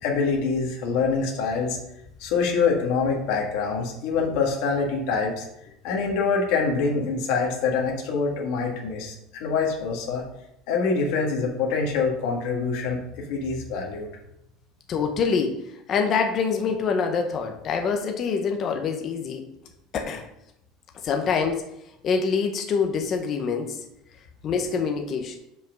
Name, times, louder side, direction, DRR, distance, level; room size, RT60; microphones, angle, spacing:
voice 1, 0.0-1.8 2.2-5.4 5.8-10.2 10.7-14.1, left 5 dB, 55° left, 0 dB, 1.5 m, -25 dB
voice 2, 14.9-15.6 15.9-19.4 19.9-20.2 21.0-21.6 22.0-23.8 24.4-25.4, left 5 dB, 30° left, 4 dB, 0.6 m, -25 dB
5.6 x 5.5 x 5.1 m, 0.82 s
cardioid pair, 175°, 0 cm